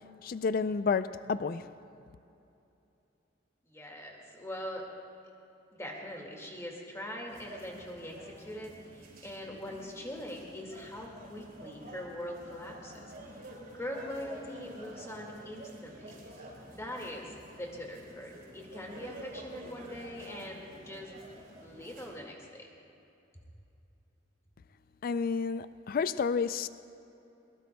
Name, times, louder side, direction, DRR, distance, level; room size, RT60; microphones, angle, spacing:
voice 1, 0.2-1.6 25.0-26.7, left 5 dB, 50° left, 13 dB, 0.3 m, -30 dB
voice 2, 3.6-4.9 5.8-13.1 13.4-21.1 21.6-22.7, left 1 dB, 15° left, -1 dB, 2.0 m, -42 dB
sound 1, 7.3-22.1, right 1 dB, 50° right, 4.2 m, -49 dB
21.5 x 21.0 x 2.3 m, 2.8 s
head